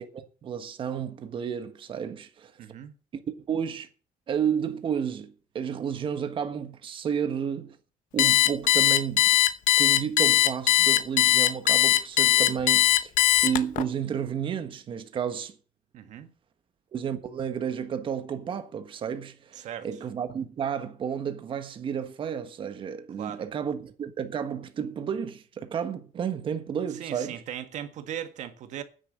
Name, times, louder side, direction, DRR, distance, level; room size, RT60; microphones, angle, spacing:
voice 1, 0.0-2.5 3.1-3.2 3.5-3.9 4.3-7.8 8.1-9.3 9.8-13.1 13.4-15.5 16.9-27.4, right 8 dB, 35° right, 1.4 m, -31 dB
voice 2, 2.6-2.9 15.9-16.3 19.5-19.9 23.2-23.5 26.9-28.8, right 10 dB, 55° right, 1.7 m, -38 dB
Alarm, 8.2-13.8, left 14 dB, 65° left, 0.9 m, -20 dB
10.0 x 8.2 x 7.4 m
cardioid pair, 165°, 14 cm